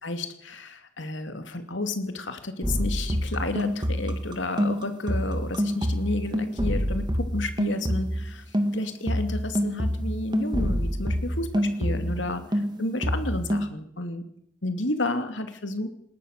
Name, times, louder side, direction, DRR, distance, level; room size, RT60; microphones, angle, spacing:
voice 1, 0.0-11.5 11.8-14.3 14.6-15.9, left 2 dB, 75° left, 7 dB, 2.8 m, -31 dB
sound 1, 2.6-8.3 8.5-12.3 12.5-13.7, equal, 25° right, 2.3 m, -27 dB
20.0 x 19.5 x 6.8 m, 0.70 s
head